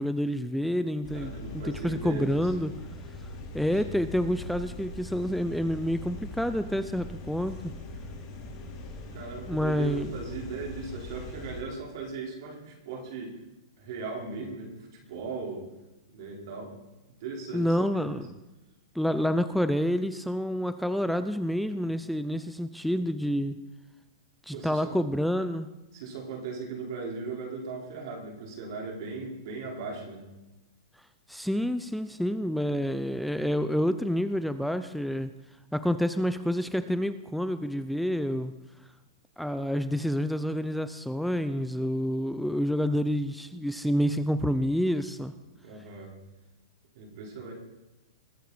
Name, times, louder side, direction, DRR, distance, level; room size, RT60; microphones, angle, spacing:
voice 1, 0.0-2.7 3.5-7.7 9.5-10.1 17.5-18.4 19.0-23.6 24.5-25.7 31.3-35.3 35.7-38.5 39.4-45.3, equal, ahead, 11 dB, 0.5 m, -28 dB
sound 1, 1.0-11.6, left 2 dB, 40° left, 3.6 m, -41 dB
voice 2, 1.1-2.5 3.7-3.8 9.1-13.4 13.8-15.7 16.1-16.7 17.2-18.2 24.5-24.9 25.9-30.2 45.6-46.1 46.9-47.5, right 4 dB, 60° right, -1 dB, 4.5 m, -38 dB
21.0 x 9.2 x 4.3 m, 1.0 s
hypercardioid pair, 140°, 2 cm